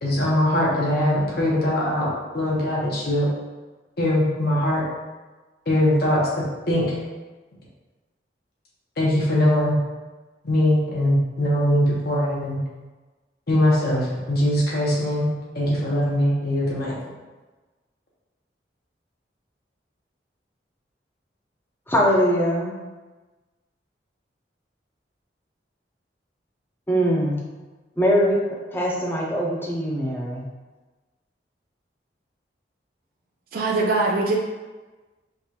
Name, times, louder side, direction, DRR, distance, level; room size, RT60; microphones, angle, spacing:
voice 1, 0.0-3.3 4.0-4.8 5.7-6.3 6.7-7.0 9.0-9.8 10.4-12.6 13.5-16.9, left 1 dB, 60° left, -5 dB, 1.2 m, -21 dB
voice 2, 21.9-22.7 26.9-27.4 28.0-28.4 28.7-30.4, equal, 10° left, -3 dB, 0.7 m, -21 dB
voice 3, 33.5-34.4, right 3 dB, 55° right, -1 dB, 0.5 m, -22 dB
5.1 x 2.5 x 2.9 m, 1.2 s
head